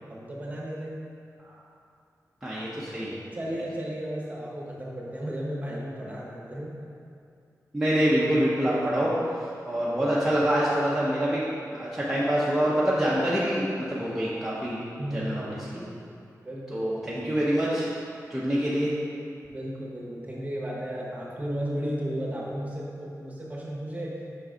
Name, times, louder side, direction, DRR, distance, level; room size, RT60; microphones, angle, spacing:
voice 1, 0.1-1.0 3.3-6.8 10.0-10.3 15.0-15.9 16.4-17.1 19.4-24.3, equal, 25° right, -5 dB, 1.1 m, -34 dB
voice 2, 2.4-3.2 7.7-9.1 9.6-11.4 11.7-14.8 15.1-15.8 16.7-17.9 18.3-18.9, equal, 5° right, -8 dB, 0.8 m, -26 dB
5.8 x 3.8 x 5.0 m, 2.5 s
wide cardioid pair, 120°, 6 cm